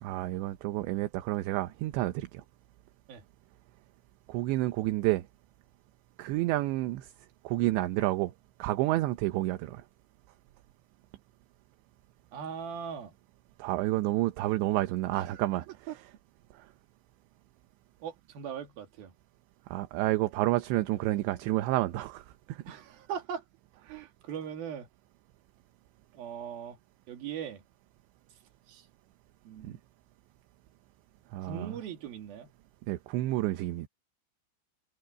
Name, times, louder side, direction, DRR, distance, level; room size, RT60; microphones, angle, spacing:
voice 1, 0.0-2.4 4.3-5.2 6.2-7.1 7.4-8.3 8.6-9.8 13.6-15.7 19.7-22.8 29.6-29.7 31.3-31.8 32.9-33.9, right 17 dB, 75° right, 3.0 m, -29 dB
voice 2, 12.3-13.1 15.1-15.4 15.9-16.0 18.0-19.1 22.7-23.4 23.8-24.9 26.1-26.8 27.1-27.6 28.7-28.9 29.5-29.8 31.4-32.5, right 8 dB, 55° right, 3.9 m, -40 dB
omnidirectional pair, 5.5 m